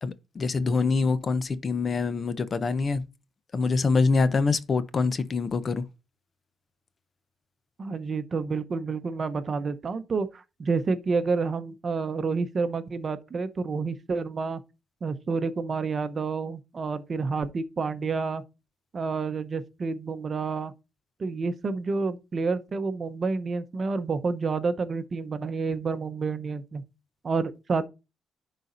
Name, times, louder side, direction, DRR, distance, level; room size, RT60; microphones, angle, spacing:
voice 1, 0.0-3.0 3.5-5.8, left 4 dB, 40° left, 0.7 m, -25 dB
voice 2, 7.8-14.6 15.0-18.4 18.9-20.7 21.2-26.8 27.2-27.9, right 4 dB, 40° right, 0.8 m, -29 dB
10.5 x 4.1 x 2.6 m
cardioid pair, 90°, 0 cm